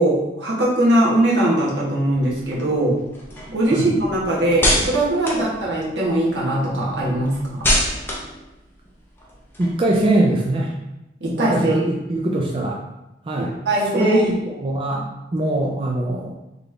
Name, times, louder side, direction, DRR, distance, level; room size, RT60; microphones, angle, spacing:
voice 1, 0.0-3.0 3.5-7.7 11.2-11.7 13.4-14.3 14.9-15.0, right 1 dB, 75° right, -5 dB, 1.4 m, -21 dB
sound 1, 2.1-6.3 6.7-10.1, equal, 15° left, 0.8 m, -26 dB
voice 2, 9.6-10.8 11.4-12.8 13.3-13.5 13.9-15.0 15.3-16.4, right 1 dB, 30° right, -2 dB, 0.4 m, -21 dB
4.0 x 3.2 x 3.3 m, 0.93 s
head